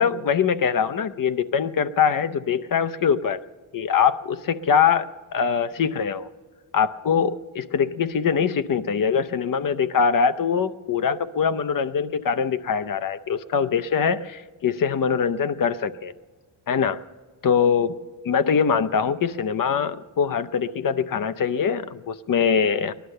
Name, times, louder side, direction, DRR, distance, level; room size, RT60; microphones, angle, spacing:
voice 1, 0.0-3.4 3.7-6.3 6.7-16.1 16.7-17.0 17.4-18.0 18.2-22.9, left 6 dB, 45° left, 13 dB, 0.6 m, -23 dB
19.0 x 11.5 x 6.5 m, 1.4 s
cardioid pair, 100°, 47 cm